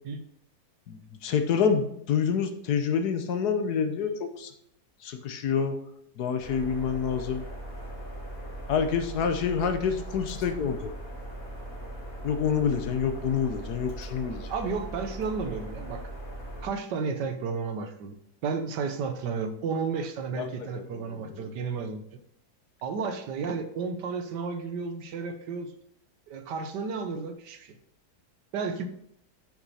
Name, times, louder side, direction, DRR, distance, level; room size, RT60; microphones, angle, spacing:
voice 1, 0.9-4.5 5.0-5.8 6.2-7.4 8.7-10.9 12.2-14.5 20.3-20.5 20.9-21.5, left 6 dB, 70° left, 8 dB, 1.4 m, -27 dB
sound 1, 6.4-16.7, right 1 dB, 55° left, 2.9 m, -39 dB
voice 2, 14.5-16.1 16.6-18.1 18.4-22.0 22.8-25.7 26.3-27.8 28.5-28.8, right 5 dB, 80° right, 8 dB, 1.5 m, -32 dB
8.7 x 6.1 x 4.2 m, 0.75 s
omnidirectional pair, 1.8 m